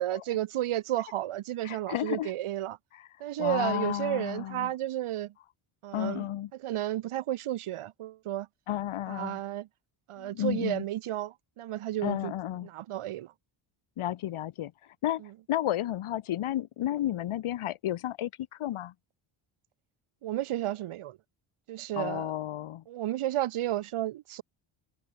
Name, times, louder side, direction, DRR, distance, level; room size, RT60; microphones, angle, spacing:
voice 1, 0.0-2.8 3.2-5.3 5.8-6.3 6.6-8.5 9.1-9.7 10.1-12.3 12.6-13.3 15.2-15.3 20.2-21.2 21.7-22.3 22.9-24.4, right 13 dB, 80° right, 3.3 m, -32 dB
voice 2, 1.6-2.3 2.9-3.1 3.4-4.7 5.9-6.5 8.7-9.4 10.2-10.8 12.0-12.7 14.0-14.7 15.0-15.2 15.5-18.3 18.6-18.9 21.9-22.8, left 13 dB, 75° left, 3.8 m, -32 dB
cardioid pair, 105°, 50 cm